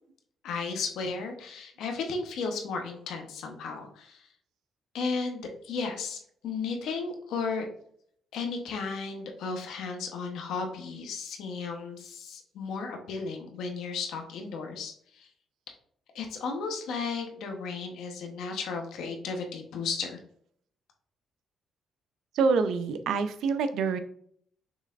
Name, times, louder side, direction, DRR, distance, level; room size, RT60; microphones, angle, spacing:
voice 1, 0.4-4.3 4.9-7.7 8.3-15.3 16.1-20.2, left 4 dB, 80° left, 3 dB, 1.1 m, -34 dB
voice 2, 22.3-24.0, right 5 dB, 80° right, 9 dB, 0.5 m, -26 dB
6.2 x 3.3 x 2.5 m, 0.64 s
cardioid pair, 90°, 0 cm